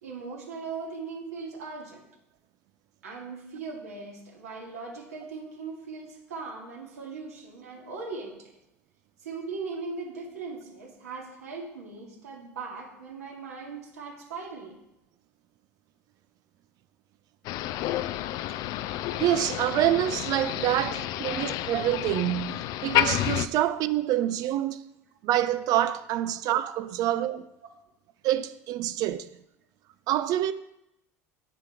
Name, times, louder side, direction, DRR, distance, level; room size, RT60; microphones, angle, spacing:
voice 1, 0.0-2.1 3.0-8.5 9.2-14.8 21.2-21.4, right 4 dB, 80° right, 2.3 m, -39 dB
Motor vehicle (road), 17.4-23.5, left 13 dB, 55° left, 0.5 m, -30 dB
voice 2, 19.2-24.8 25.2-27.5 28.2-29.4 30.1-30.5, right 12 dB, 50° right, 0.5 m, -26 dB
8.8 x 6.8 x 4.5 m
hypercardioid pair, 75°, 8 cm